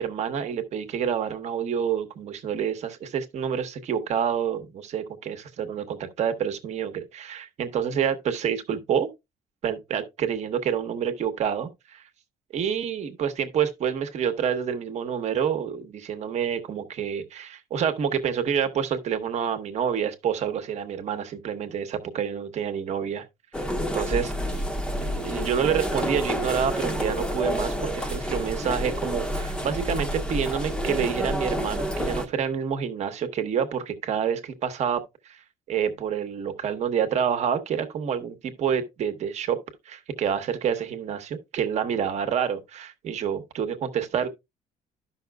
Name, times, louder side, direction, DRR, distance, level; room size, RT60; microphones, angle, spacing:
voice 1, 0.0-9.1 9.6-12.0 12.5-23.2 23.9-24.6 25.2-35.4 35.7-39.6 39.9-44.3, right 8 dB, 45° right, 1.0 m, -28 dB
sound 1, 23.5-32.3, equal, 5° left, 0.7 m, -29 dB
12.5 x 5.7 x 2.2 m
cardioid pair, 145°, 15 cm